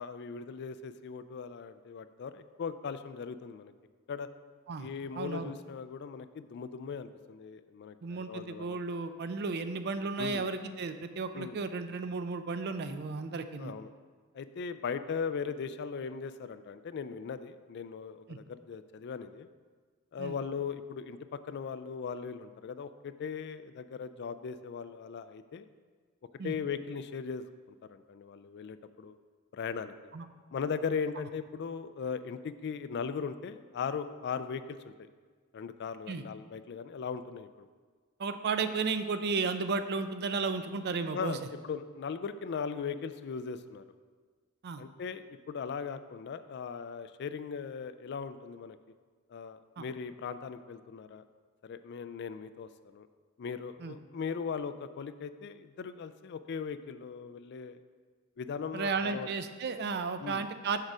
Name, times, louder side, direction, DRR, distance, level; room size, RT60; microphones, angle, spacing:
voice 1, 0.0-3.7 4.1-4.3 4.8-8.8 10.2-10.5 11.3-11.6 13.6-13.9 14.3-19.5 20.1-21.2 21.5-25.7 26.4-29.2 29.5-29.9 30.5-35.1 35.5-37.5 41.1-43.8 44.8-48.8 49.3-51.2 51.6-53.1 53.4-57.8 58.4-59.3 60.2-60.5, left 6 dB, 50° left, 12 dB, 0.3 m, -38 dB
voice 2, 5.2-5.5 8.0-13.7 18.3-18.4 20.2-20.4 26.4-26.5 30.1-30.2 36.1-36.2 38.2-41.4 44.6-44.8 49.8-49.9 53.8-53.9 58.7-60.8, right 4 dB, 50° right, 10 dB, 0.4 m, -34 dB
6.5 x 4.7 x 6.1 m, 1.5 s
head